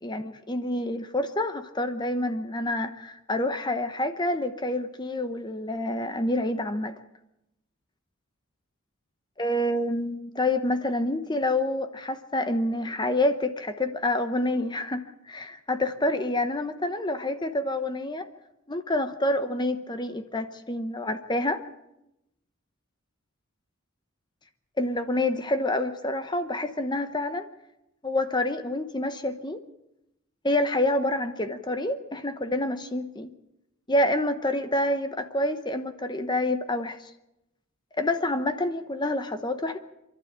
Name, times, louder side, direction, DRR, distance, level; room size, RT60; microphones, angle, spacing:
voice 1, 0.0-6.9 9.4-18.3 18.7-21.6 24.8-27.5 28.0-29.6 30.4-33.3 33.9-37.1 38.0-39.8, left 1 dB, 20° left, 9 dB, 0.9 m, -27 dB
27.5 x 12.0 x 8.8 m, 0.87 s
head